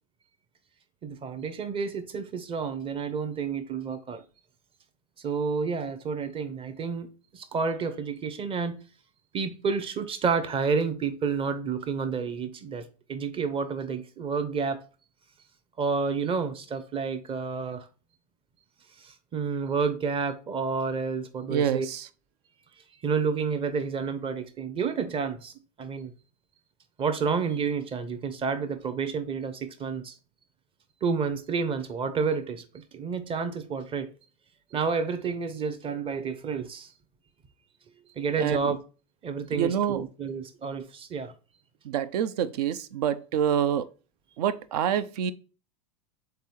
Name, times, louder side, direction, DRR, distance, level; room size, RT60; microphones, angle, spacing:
voice 1, 1.0-4.2 5.2-8.8 9.3-14.8 15.8-17.9 19.0-21.9 23.0-25.5 25.8-26.1 27.0-30.1 31.0-34.1 34.7-36.9 38.2-38.8 39.2-41.3, right 5 dB, 25° right, 0.7 m, -30 dB
voice 2, 21.5-22.1 38.4-38.7 39.5-40.0 41.8-43.9 44.4-45.3, right 9 dB, 70° right, 0.5 m, -27 dB
3.7 x 3.3 x 4.1 m
hypercardioid pair, 100°, 21 cm